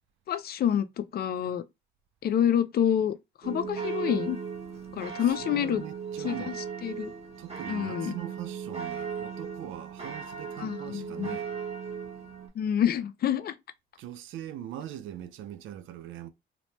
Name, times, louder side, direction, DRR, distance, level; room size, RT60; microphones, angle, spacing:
voice 1, 0.3-1.6 2.2-3.2 3.4-4.4 4.9-5.8 6.2-6.5 6.8-7.1 7.7-8.1 10.6-11.4 12.6-13.5, left 9 dB, 50° left, 0.4 m, -27 dB
sound 1, 3.4-12.5, right 6 dB, 30° right, 1.0 m, -37 dB
voice 2, 5.2-6.6 7.4-11.5 14.0-16.3, right 11 dB, 80° right, 0.4 m, -41 dB
2.9 x 2.1 x 3.0 m
cardioid pair, 90°, 20 cm